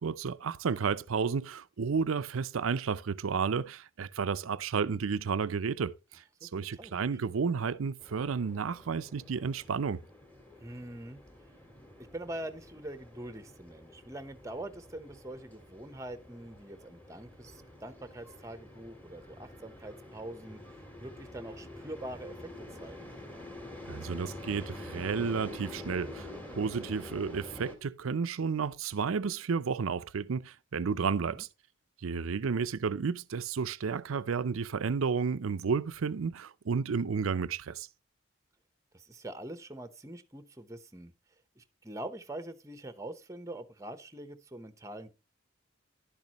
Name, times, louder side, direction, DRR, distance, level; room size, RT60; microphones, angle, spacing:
voice 1, 0.0-10.0 23.8-26.3 26.6-31.5 32.0-37.9, right 5 dB, 90° right, 0.5 m, -32 dB
voice 2, 6.4-7.0 10.6-11.2 12.1-20.6 21.0-22.5 22.8-23.1 31.2-31.4 38.9-41.1 41.6-45.1, right 1 dB, 15° right, 0.8 m, -44 dB
sound 1, 8.0-27.7, left 1 dB, 10° left, 1.8 m, -47 dB
11.5 x 10.5 x 3.0 m
head